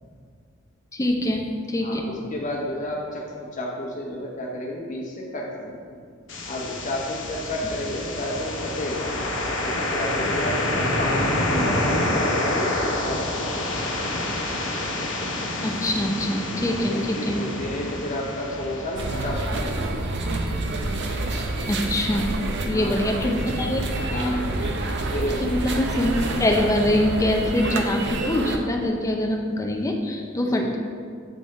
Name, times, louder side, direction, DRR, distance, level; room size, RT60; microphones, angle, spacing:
voice 1, 0.9-2.0 15.6-17.4 21.7-22.3 22.6-24.4 25.4-30.8, left 1 dB, 15° left, 2 dB, 0.5 m, -24 dB
voice 2, 1.8-5.9 6.5-14.2 16.5-20.1 22.7-23.2 24.0-24.7 25.1-25.6 30.5-30.8, left 1 dB, 40° left, -2 dB, 1.0 m, -32 dB
sound 1, 6.3-20.2, left 1 dB, 65° left, 0.9 m, -27 dB
sound 2, 19.0-28.6, right 2 dB, 60° right, 0.6 m, -28 dB
7.7 x 3.6 x 4.2 m, 2.1 s
head